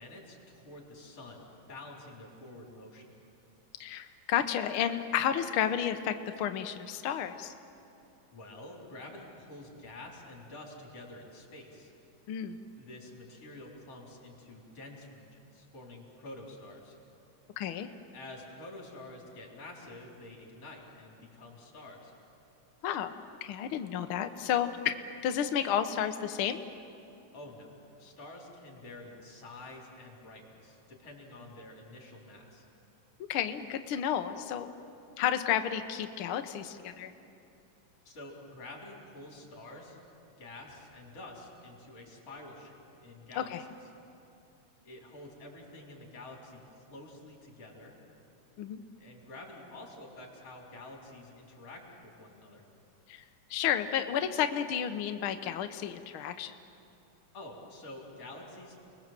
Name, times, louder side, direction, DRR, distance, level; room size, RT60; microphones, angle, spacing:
voice 1, 0.0-3.2 8.3-11.9 12.7-17.0 18.1-22.1 27.3-32.6 38.0-40.0 40.4-43.5 44.8-48.0 49.0-52.6 57.3-58.8, left 2 dB, 50° left, -1 dB, 4.9 m, -48 dB
voice 2, 3.8-7.5 12.3-12.6 17.6-17.9 22.8-23.1 23.4-25.0 25.2-26.6 33.3-34.7 35.2-37.1 43.4-43.6 48.6-48.8 53.1-53.2 53.5-56.5, left 9 dB, 70° left, 7 dB, 1.2 m, -31 dB
30.0 x 21.0 x 7.6 m, 2.7 s
omnidirectional pair, 3.5 m